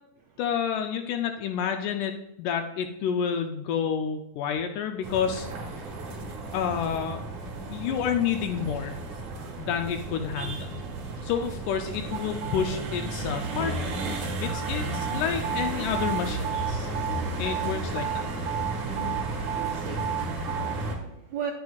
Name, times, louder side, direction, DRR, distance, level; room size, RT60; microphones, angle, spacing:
voice 1, 0.4-5.8 6.5-7.2 7.7-9.0 9.6-10.8 11.2-13.9 14.4-16.9 17.4-18.3, left 7 dB, 80° left, 5 dB, 2.0 m, -29 dB
sound 1, 5.0-20.9, right 4 dB, 60° right, 2.4 m, -32 dB
voice 2, 19.5-21.5, right 8 dB, 85° right, 3 dB, 1.6 m, -38 dB
10.5 x 8.7 x 2.4 m, 0.82 s
omnidirectional pair, 3.8 m